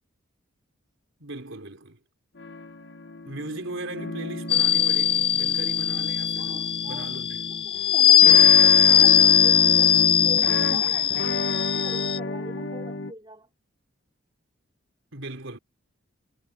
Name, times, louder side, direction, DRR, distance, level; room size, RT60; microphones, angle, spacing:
voice 1, 1.2-2.0 3.2-6.6 6.8-7.4 15.1-15.6, right 2 dB, 65° right, 3.5 m, -38 dB
sound 1, 2.4-13.1, left 2 dB, 55° left, 1.1 m, -32 dB
sound 2, 4.5-12.2, left 9 dB, 25° left, 0.3 m, -19 dB
voice 2, 6.4-7.2 7.5-13.5, equal, 20° right, 3.8 m, -43 dB
head